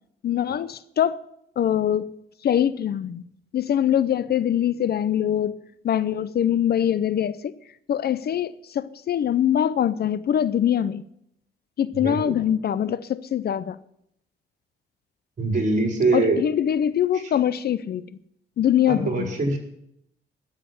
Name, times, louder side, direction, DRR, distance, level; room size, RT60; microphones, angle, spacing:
voice 1, 0.2-1.2 1.6-2.1 2.4-3.2 3.5-5.6 5.8-7.6 7.9-11.0 11.8-13.8 16.1-18.1 18.6-19.3, left 10 dB, 55° left, 0.6 m, -23 dB
voice 2, 15.4-16.4 18.9-19.6, right 3 dB, 40° right, 4.6 m, -23 dB
12.5 x 7.5 x 9.5 m
cardioid pair, 90°, 20 cm